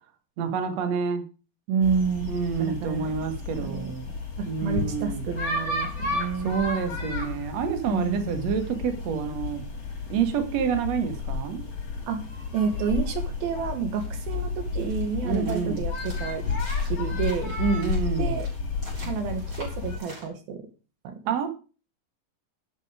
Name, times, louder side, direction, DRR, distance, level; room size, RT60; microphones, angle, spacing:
voice 1, 0.4-1.2 2.3-4.1 4.4-5.2 6.4-9.6 10.1-11.6 15.2-15.8 17.6-18.4 21.3-21.5, right 6 dB, 50° right, 7 dB, 2.6 m, -28 dB
voice 2, 1.7-3.1 3.6-3.9 4.4-6.5 7.9-8.3 12.1-12.2 12.5-16.4 16.8-17.6 18.2-18.5 19.0-20.6 21.0-21.2, right 6 dB, 70° right, 7 dB, 3.1 m, -29 dB
sound 1, 1.8-20.0, left 4 dB, 40° left, 5.4 m, -32 dB
sound 2, 13.9-20.3, right 1 dB, 30° right, 6.5 m, -48 dB
11.5 x 9.1 x 5.0 m, 0.34 s
omnidirectional pair, 4.6 m